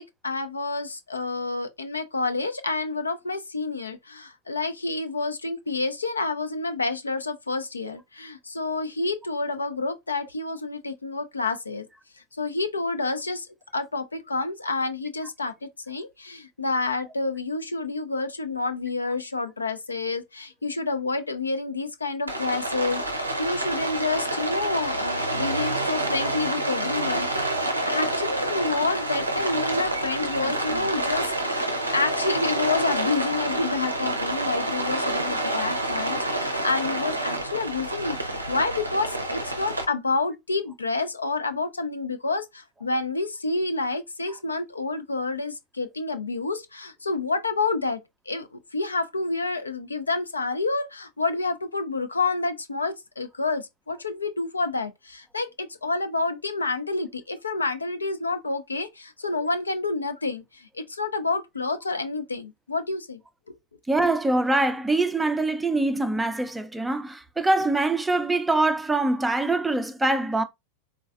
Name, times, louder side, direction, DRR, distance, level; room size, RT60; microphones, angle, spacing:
voice 1, 0.0-11.9 12.4-13.5 13.7-48.0 48.3-48.5 48.7-63.2, left 3 dB, 80° left, 0.4 m, -29 dB
Rain, 22.3-39.9, right 1 dB, 85° right, 0.5 m, -28 dB
voice 2, 63.9-70.4, right 2 dB, 5° right, 0.4 m, -24 dB
3.8 x 2.2 x 2.4 m
figure-of-eight pair, 90°, 0 cm